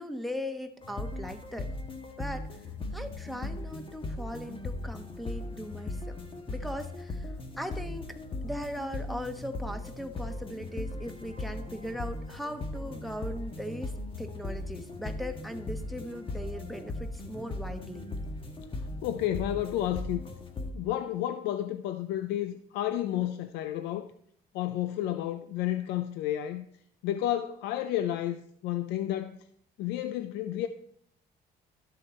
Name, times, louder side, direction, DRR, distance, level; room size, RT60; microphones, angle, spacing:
voice 1, 0.0-1.7 2.2-2.6 2.9-6.2 6.5-8.1 8.4-18.1, equal, ahead, 1.1 m, -39 dB
sound 1, 0.8-20.7, left 2 dB, 30° left, 1.4 m, -38 dB
voice 2, 19.0-20.2 20.7-24.1 24.5-26.7 27.0-29.4 29.8-30.7, left 12 dB, 90° left, 0.5 m, -31 dB
12.5 x 6.6 x 4.2 m
cardioid pair, 110°, 17 cm